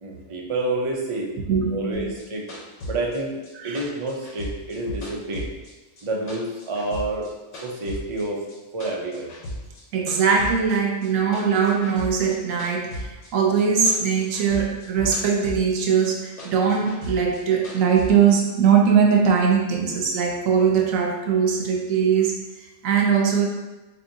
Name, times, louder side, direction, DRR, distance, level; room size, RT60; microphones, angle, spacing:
voice 1, 0.0-1.3 1.7-2.5 2.9-3.3 3.6-5.5 6.0-7.3 7.6-8.4 8.7-9.3, right 2 dB, 55° right, -1 dB, 0.3 m, -28 dB
voice 2, 1.5-2.1 3.5-3.8 9.9-22.3 22.8-23.5, right 6 dB, 80° right, 1 dB, 1.0 m, -21 dB
sound 1, 1.9-6.0 6.3-8.2 8.5-9.8 10.1-13.6 13.9-15.8 16.1-18.1, equal, 70° left, 1.2 m, -36 dB
4.2 x 2.8 x 2.6 m, 1.1 s
omnidirectional pair, 1.4 m